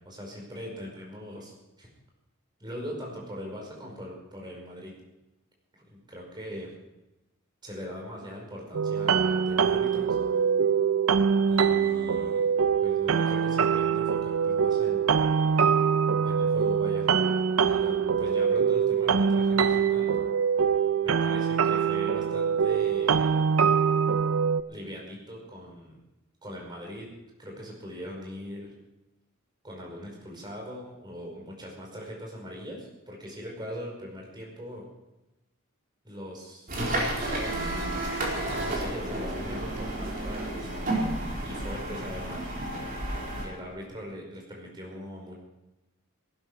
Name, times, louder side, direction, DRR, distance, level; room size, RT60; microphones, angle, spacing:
voice 1, 0.0-1.9 2.6-4.9 5.7-6.7 7.6-10.1 11.5-12.4 12.8-15.2 16.2-17.1 17.6-20.2 21.0-23.3 24.7-26.0 26.4-27.1 27.4-28.7 29.6-34.8 36.0-36.9 37.4-37.8 38.5-40.8 41.4-42.5 43.4-45.3, equal, 20° right, -2 dB, 5.2 m, -41 dB
sound 1, 8.7-24.6, right 6 dB, 70° right, 0.6 m, -24 dB
sound 2, 36.7-43.5, right 1 dB, 40° right, 4.3 m, -31 dB
18.0 x 12.5 x 4.8 m, 0.97 s
head